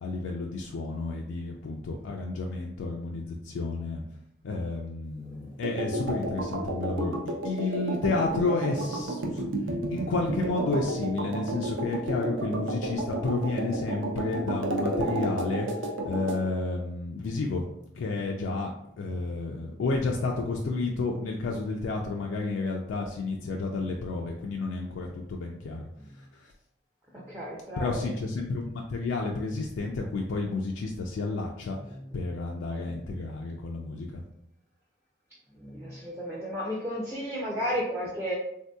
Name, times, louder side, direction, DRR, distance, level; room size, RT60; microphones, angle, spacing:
voice 1, 0.0-4.0 4.4-9.4 9.9-17.6 18.0-18.7 19.0-25.9 26.1-26.5 27.8-31.8 32.1-34.2, left 3 dB, 75° left, 0 dB, 0.3 m, -31 dB
voice 2, 5.2-5.6 27.1-28.0 35.6-38.4, equal, 10° right, -6 dB, 0.4 m, -33 dB
sound 1, 5.6-16.4, right 1 dB, 75° right, 0.5 m, -32 dB
3.5 x 2.7 x 2.2 m, 0.78 s
head